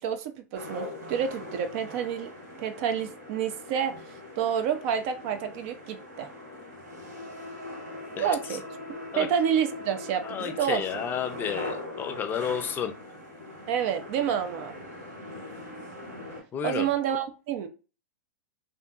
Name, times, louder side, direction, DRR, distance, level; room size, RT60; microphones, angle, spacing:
voice 1, 0.0-2.3 2.6-3.9 4.4-6.3 8.2-8.6 9.2-10.8 13.7-14.7 16.6-17.7, right 8 dB, 50° right, 9 dB, 0.4 m, -28 dB
sound 1, 0.5-16.4, left 1 dB, 90° right, 1.4 m, -41 dB
voice 2, 10.2-12.9 16.5-16.9, left 8 dB, 20° left, 6 dB, 0.4 m, -31 dB
2.7 x 2.5 x 2.3 m, 0.33 s
hypercardioid pair, 120°, 9 cm